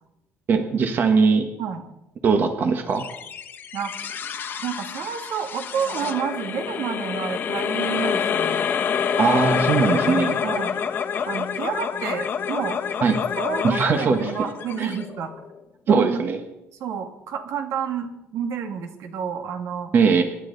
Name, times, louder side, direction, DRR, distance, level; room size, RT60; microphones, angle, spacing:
voice 1, 0.5-1.4 2.2-3.0 9.2-10.4 13.0-13.2 13.6-14.3 14.8-14.9 15.9-16.4 19.9-20.2, right 5 dB, 40° right, 6 dB, 1.3 m, -20 dB
sound 1, 3.0-15.6, left 7 dB, 40° left, 1.2 m, -27 dB
voice 2, 4.6-8.7 10.4-10.8 11.3-12.8 13.4-15.3 15.9-16.2 16.8-19.9, right 7 dB, 70° right, 5 dB, 2.0 m, -30 dB
26.5 x 11.5 x 4.0 m, 0.92 s
cardioid pair, 165°, 5 cm